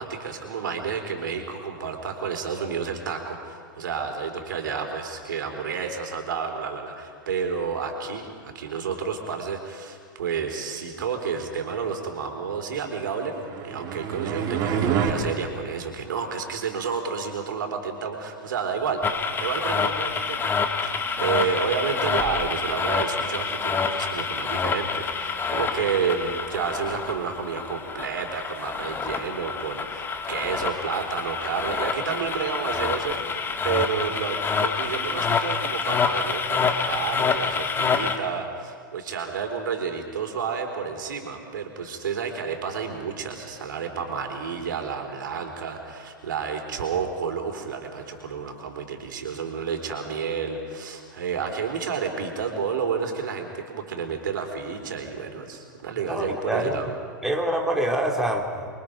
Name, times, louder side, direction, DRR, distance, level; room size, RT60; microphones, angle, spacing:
voice 1, 0.0-13.4 13.6-56.9, right 6 dB, 70° right, 4 dB, 3.9 m, -30 dB
sound 1, 13.2-15.1, right 8 dB, 40° right, 3.2 m, -27 dB
sound 2, 19.0-38.2, left 5 dB, 20° left, 1.7 m, -27 dB
voice 2, 56.0-56.9 57.2-58.7, right 1 dB, ahead, 0 dB, 3.0 m, -26 dB
28.5 x 23.5 x 5.2 m, 2.1 s
hypercardioid pair, 105°, 11 cm